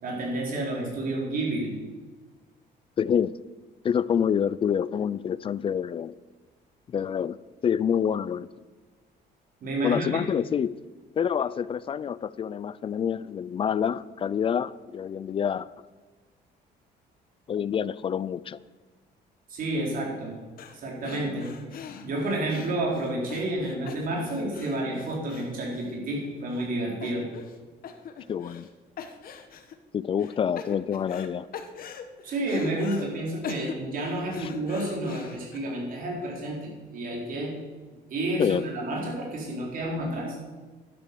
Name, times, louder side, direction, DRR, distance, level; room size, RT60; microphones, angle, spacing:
voice 1, 0.0-1.7 9.6-10.2 19.5-20.3 20.7-21.5 22.0-27.3 32.2-37.5 38.1-40.4, right 1 dB, 55° right, -2 dB, 4.6 m, -30 dB
voice 2, 3.0-3.3 3.8-6.1 6.9-7.4 7.6-8.5 9.8-10.8 11.2-15.7 17.5-18.6 28.3-28.7 29.9-31.5 34.4-34.5 38.4-38.6, left 8 dB, 30° left, 19 dB, 0.3 m, -27 dB
sound 1, 20.6-20.8 21.0-26.2 26.5-26.7 27.0-27.6 27.8-28.7 29.0-29.7 30.2-31.3 31.5-33.1 33.4-35.6, left 7 dB, 55° left, 1.2 m, -41 dB
11.5 x 11.0 x 7.0 m, 1.4 s
cardioid pair, 150°, 18 cm